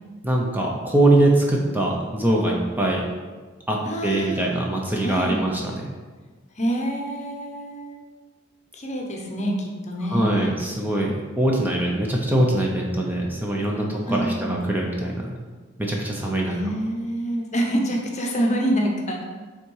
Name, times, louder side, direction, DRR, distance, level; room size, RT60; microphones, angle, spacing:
voice 1, 0.2-3.0 3.7-3.8 4.0-5.9 10.1-15.3 15.8-16.5, right 1 dB, 10° right, -2 dB, 0.6 m, -22 dB
voice 2, 3.8-4.5 5.0-5.4 6.5-8.0 8.7-10.5 14.1-14.6 16.4-19.3, right 1 dB, 35° left, 0 dB, 0.8 m, -26 dB
5.7 x 3.6 x 4.7 m, 1.4 s
head